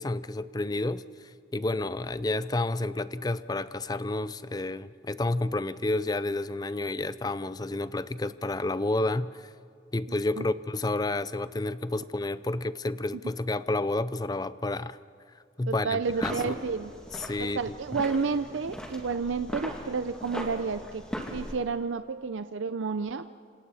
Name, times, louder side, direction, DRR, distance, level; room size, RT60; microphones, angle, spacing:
voice 1, 0.0-9.5 9.9-15.0 15.6-16.5 17.2-17.6, left 2 dB, 20° left, 0.5 m, -30 dB
voice 2, 10.1-10.5 15.7-16.9 17.4-21.0 21.3-23.2, right 5 dB, 85° right, 0.6 m, -31 dB
sound 1, 16.0-21.5, equal, 5° left, 2.5 m, -39 dB
27.5 x 27.0 x 4.2 m
head